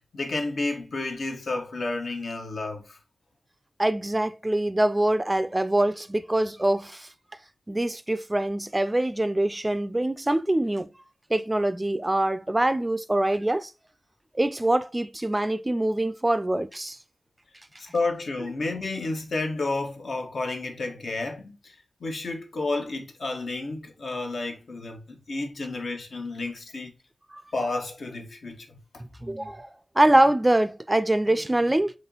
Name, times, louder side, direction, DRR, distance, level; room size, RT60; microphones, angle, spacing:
voice 1, 0.1-3.0 17.8-26.9 27.5-28.7, left 2 dB, 80° left, 1.0 m, -31 dB
voice 2, 3.8-7.1 7.7-10.9 11.3-13.7 14.3-17.0 18.4-18.5 27.3-27.4 29.2-29.7 30.0-31.9, right 1 dB, 20° right, 0.3 m, -24 dB
4.2 x 3.0 x 3.8 m
wide cardioid pair, 105°, 0 cm